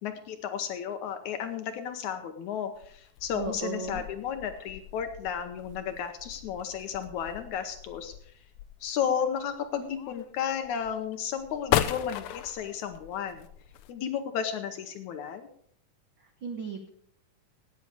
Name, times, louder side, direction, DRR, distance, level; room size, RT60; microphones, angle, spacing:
voice 1, 0.0-8.1 8.8-13.5 13.9-15.5, left 8 dB, 70° left, 7 dB, 2.0 m, -33 dB
sound 1, 2.7-13.9, left 12 dB, 90° left, 1.6 m, -37 dB
voice 2, 3.3-4.0 16.4-16.9, right 5 dB, 75° right, 5 dB, 1.1 m, -35 dB
18.0 x 8.4 x 4.8 m, 0.67 s
omnidirectional pair, 4.0 m